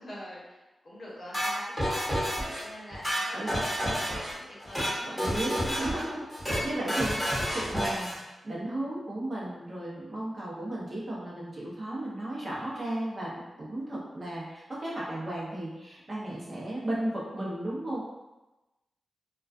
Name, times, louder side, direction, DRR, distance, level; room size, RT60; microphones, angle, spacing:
voice 1, 0.0-5.4, equal, 50° left, -6 dB, 0.8 m, -44 dB
sound 1, 1.3-2.6 2.9-4.3 4.6-4.9 5.2-6.0 6.3-6.6 6.9-8.2, equal, 5° left, 1.0 m, -30 dB
voice 2, 5.1-8.1 8.4-18.0, right 1 dB, 40° right, -6 dB, 0.7 m, -35 dB
2.3 x 2.2 x 2.4 m, 1.0 s
cardioid pair, 75°, 0 cm